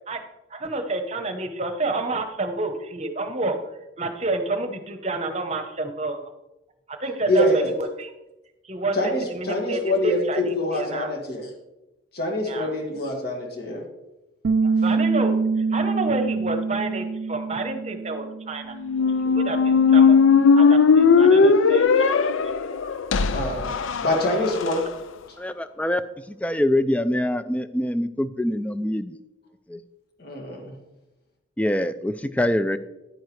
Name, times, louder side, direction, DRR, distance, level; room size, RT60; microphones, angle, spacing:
voice 1, 0.5-3.6 4.0-6.2 6.9-8.1 8.6-11.1 12.4-12.7 14.6-18.8 19.3-20.2 20.5-22.6, right 2 dB, 30° right, 7 dB, 0.9 m, -29 dB
voice 2, 7.3-7.7 8.9-11.5 12.1-13.8 23.3-23.7 24.0-24.8 30.2-30.7, left 1 dB, 50° left, 0 dB, 1.9 m, -25 dB
Bass guitar, 14.4-20.7, right 4 dB, 80° right, 0.4 m, -26 dB
Squeak, 18.8-24.8, left 5 dB, 75° left, 0.4 m, -18 dB
voice 3, 25.4-26.0 26.3-29.2 29.7-29.8 31.6-32.8, left 1 dB, 5° left, 12 dB, 0.3 m, -24 dB
10.5 x 9.0 x 3.2 m, 0.97 s
head